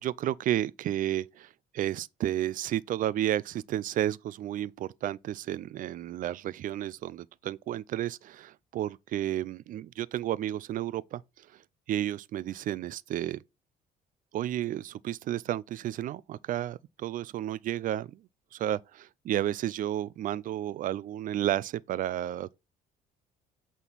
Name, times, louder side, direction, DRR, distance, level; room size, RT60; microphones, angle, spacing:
voice 1, 0.0-11.5 11.9-13.4 14.3-18.2 18.5-22.5, right 12 dB, 55° right, 0.4 m, -32 dB
8.3 x 3.7 x 4.0 m
cardioid pair, 110°, 17 cm